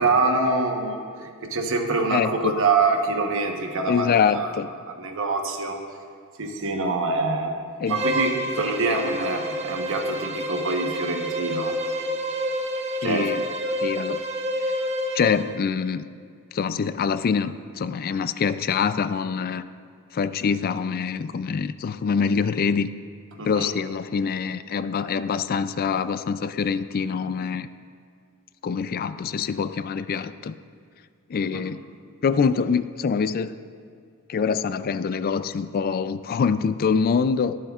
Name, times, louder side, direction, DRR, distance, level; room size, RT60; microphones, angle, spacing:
voice 1, 0.0-4.5 5.0-5.8 6.4-7.6 7.9-11.7 13.0-13.3 23.4-23.7 31.5-31.6, right 3 dB, 60° right, 3 dB, 1.1 m, -25 dB
voice 2, 2.1-2.6 3.9-4.7 7.8-8.0 8.9-9.1 13.0-13.5 13.8-14.3 14.6-14.7 15.1-16.1 16.5-19.6 20.1-22.9 23.4-27.7 28.6-30.6 31.3-31.8 32.2-33.5 34.3-37.6, left 6 dB, 45° left, 13 dB, 0.3 m, -25 dB
Bowed string instrument, 7.9-15.5, equal, 30° right, 0.9 m, -28 dB
21.5 x 7.6 x 2.4 m, 2.1 s
head